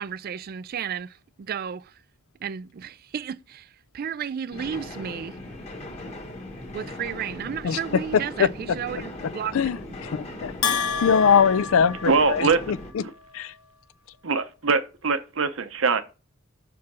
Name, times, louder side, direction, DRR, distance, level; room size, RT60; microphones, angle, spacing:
voice 1, 0.0-2.0 2.4-5.4 6.7-9.6, right 8 dB, 45° right, 0.3 m, -33 dB
sound 1, 4.5-12.9, left 1 dB, 30° left, 1.4 m, -39 dB
voice 2, 9.5-12.8 13.3-13.5, left 7 dB, 70° left, 0.4 m, -22 dB
Bell, 10.6-12.8, left 6 dB, 90° left, 0.8 m, -29 dB
voice 3, 12.1-12.6 13.0-13.1 14.2-16.0, right 4 dB, 70° right, 0.8 m, -23 dB
5.8 x 4.7 x 6.1 m
head